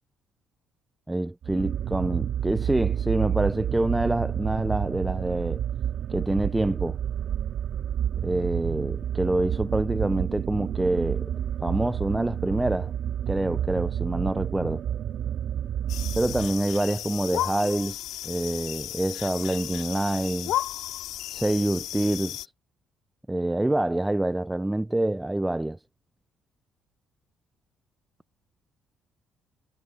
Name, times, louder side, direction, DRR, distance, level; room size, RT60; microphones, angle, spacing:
voice 1, 1.1-5.6 6.1-7.0 8.2-11.3 11.6-12.9 13.3-14.8 16.2-20.5 21.3-22.5 23.3-25.8, right 1 dB, 10° right, 0.3 m, -26 dB
sound 1, 1.4-16.8, right 10 dB, 60° right, 2.0 m, -30 dB
sound 2, 15.9-22.5, left 13 dB, 80° left, 3.5 m, -34 dB
cardioid pair, 135°, 0 cm